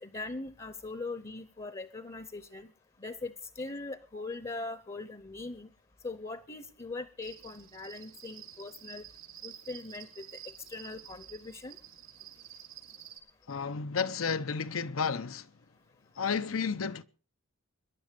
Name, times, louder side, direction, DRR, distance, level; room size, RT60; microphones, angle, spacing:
voice 1, 0.0-2.7 3.0-5.7 6.0-9.0 9.4-11.8, left 3 dB, 25° left, 0.7 m, -41 dB
Cricket, 7.2-13.2, right 10 dB, 90° right, 4.6 m, -50 dB
voice 2, 13.5-15.5 16.2-17.0, left 5 dB, 90° left, 0.8 m, -32 dB
22.5 x 11.0 x 5.2 m
head